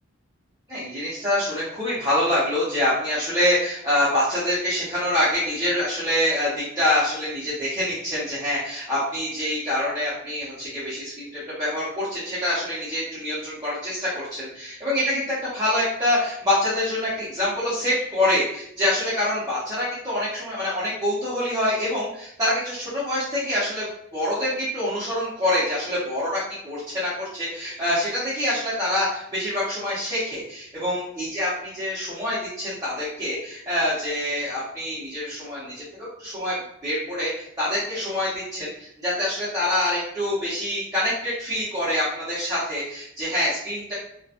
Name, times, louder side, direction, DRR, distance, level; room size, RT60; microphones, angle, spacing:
voice 1, 0.7-23.9 24.1-36.6 36.8-43.9, left 1 dB, 20° right, -11 dB, 0.8 m, -25 dB
2.8 x 2.2 x 2.5 m, 0.73 s
head